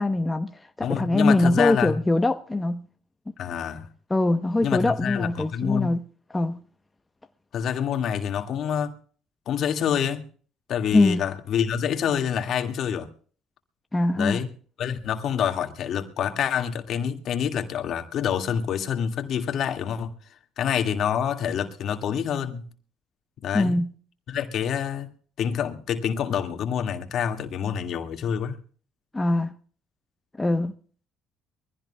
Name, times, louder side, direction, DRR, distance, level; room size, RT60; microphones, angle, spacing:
voice 1, 0.0-2.9 4.1-6.0 6.3-6.6 10.9-11.2 13.9-14.4 23.5-23.9 29.1-29.5 30.4-30.8, left 2 dB, 15° left, 0.9 m, -23 dB
voice 2, 0.8-2.0 3.4-3.9 4.6-5.9 7.5-9.0 9.5-10.3 10.7-13.1 14.1-14.5 14.8-20.1 20.6-22.7 23.4-23.8 24.3-25.1 25.4-28.6, left 8 dB, 60° left, 2.0 m, -27 dB
23.5 x 15.5 x 2.3 m
cardioid pair, 95°, 0 cm